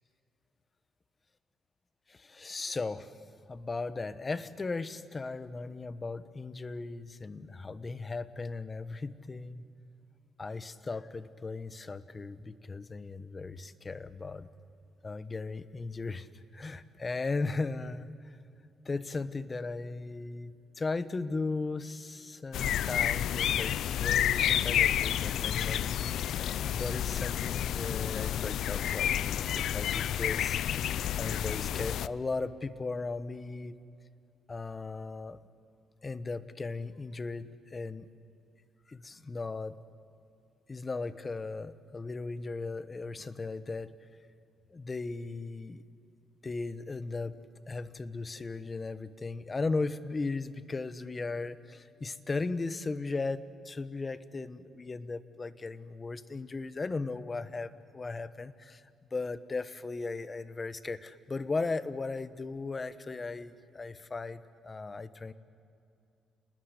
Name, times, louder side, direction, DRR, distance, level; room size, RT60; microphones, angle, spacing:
voice 1, 2.1-3.1 3.5-9.7 10.4-14.5 15.0-16.3 16.5-18.4 18.8-26.2 26.7-30.6 31.2-33.8 34.5-35.4 36.0-38.1 38.9-39.8 40.7-43.9 44.7-45.8 46.4-47.4 47.7-58.8 59.1-65.3, left 3 dB, 30° left, 13 dB, 1.1 m, -37 dB
sound 1, 22.5-32.1, left 10 dB, 75° left, 0.5 m, -30 dB
29.0 x 20.0 x 8.2 m, 2.6 s
cardioid pair, 90°, 0 cm